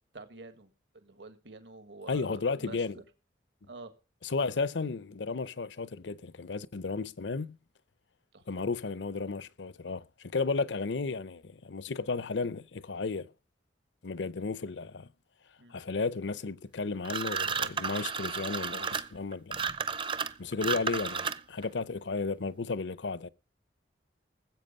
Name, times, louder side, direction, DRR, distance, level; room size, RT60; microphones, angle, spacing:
voice 1, 0.1-3.0 3.7-3.9 8.3-8.6 15.6-15.7, right 3 dB, 70° right, 1.6 m, -48 dB
voice 2, 2.1-3.0 4.2-7.6 8.5-13.3 14.0-15.1 15.7-19.7 20.4-23.3, left 4 dB, 75° left, 0.7 m, -33 dB
sound 1, 17.0-21.6, right 6 dB, 25° right, 0.6 m, -33 dB
19.0 x 8.1 x 5.4 m
head